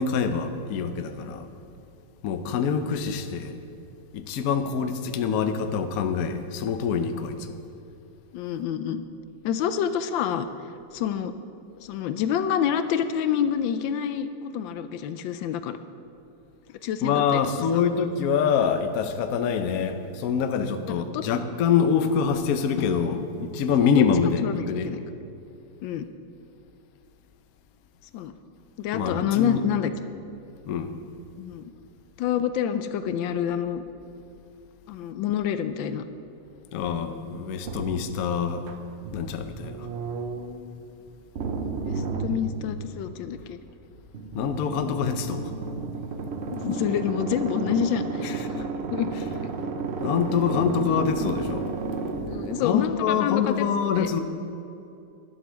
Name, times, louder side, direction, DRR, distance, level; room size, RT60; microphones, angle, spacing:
voice 1, 0.0-1.5 2.2-3.5 4.1-7.5 17.0-24.9 28.9-29.6 30.7-30.9 36.7-38.6 39.1-39.9 44.3-45.5 48.2-48.4 50.0-51.7 52.6-54.2, left 6 dB, 60° left, 8 dB, 1.0 m, -25 dB
voice 2, 8.3-9.0 9.4-10.5 10.9-11.3 11.8-15.8 16.8-17.4 17.7-17.8 21.1-21.2 23.8-24.1 24.4-25.0 25.8-26.1 28.1-28.3 28.8-29.9 31.4-31.6 32.2-33.8 34.9-36.0 41.8-43.6 46.5-49.1 52.3-54.1, left 8 dB, 80° left, 11 dB, 1.3 m, -27 dB
sound 1, 37.6-40.7 41.3-43.1 44.1-52.6, right 4 dB, 90° right, 0.5 m, -32 dB
11.5 x 8.0 x 6.2 m, 2.7 s
omnidirectional pair, 2.1 m